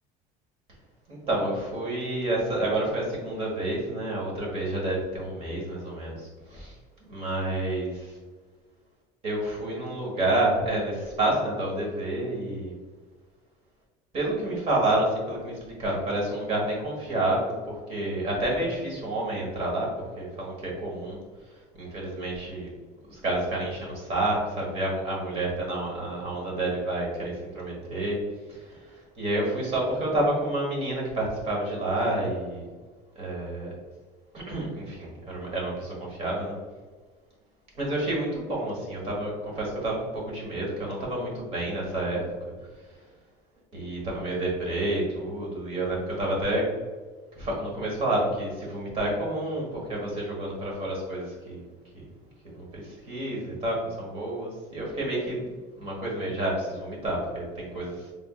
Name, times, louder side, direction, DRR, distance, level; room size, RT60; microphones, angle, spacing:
voice 1, 1.1-6.7 7.0-8.2 9.2-12.7 14.1-21.2 21.7-22.7 23.1-28.2 28.5-32.7 33.1-33.7 34.3-36.6 37.7-42.2 43.7-46.7 47.3-51.6 51.9-52.0 52.5-55.5 55.8-58.1, right 1 dB, 35° right, -3 dB, 1.4 m, -29 dB
4.4 x 3.5 x 2.4 m, 1.4 s
cardioid pair, 170°, 17 cm